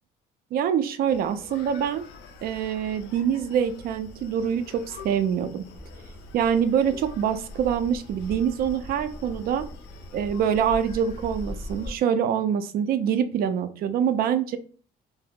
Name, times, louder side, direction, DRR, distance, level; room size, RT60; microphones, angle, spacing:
voice 1, 0.5-2.1 2.4-5.6 6.3-9.7 10.1-14.6, right 8 dB, 60° right, 10 dB, 0.4 m, -25 dB
Screaming, 1.1-11.9, left 3 dB, 90° left, 0.5 m, -45 dB
Car passing by / Accelerating revving vroom, 5.7-11.9, left 1 dB, 15° left, 0.5 m, -41 dB
2.7 x 2.0 x 3.5 m, 0.41 s
cardioid pair, 110°, 17 cm